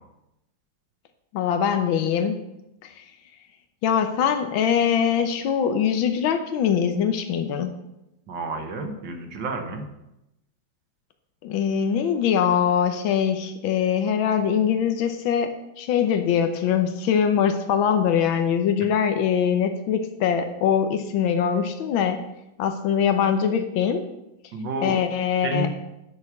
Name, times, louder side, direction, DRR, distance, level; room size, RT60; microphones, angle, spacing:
voice 1, 1.3-2.4 2.8-3.0 3.8-7.7 11.4-22.2 22.6-24.1 24.8-25.7, left 8 dB, 85° left, 7 dB, 1.6 m, -22 dB
voice 2, 8.3-9.8 24.5-25.0 25.4-25.7, right 2 dB, 65° right, 5 dB, 1.9 m, -30 dB
9.6 x 6.5 x 7.1 m, 0.91 s
omnidirectional pair, 2.1 m